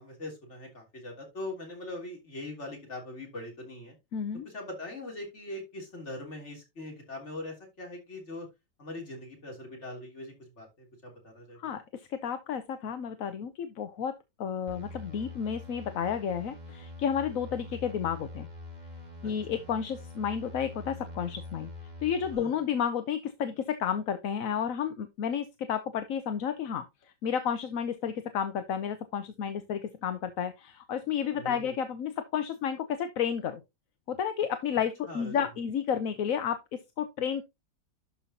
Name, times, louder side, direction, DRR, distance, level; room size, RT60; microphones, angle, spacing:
voice 1, 0.0-4.0 4.4-8.5 8.8-11.6 19.2-19.3 22.3-22.5 31.3-31.7 35.1-35.4, left 2 dB, 40° left, 3.5 m, -41 dB
voice 2, 4.1-4.5 11.6-14.1 14.4-18.5 19.2-21.7 22.0-33.6 34.1-37.4, left 8 dB, 60° left, 1.1 m, -31 dB
sound 1, 14.7-22.4, left 2 dB, 25° right, 1.7 m, -44 dB
12.0 x 5.5 x 2.8 m
omnidirectional pair, 1.8 m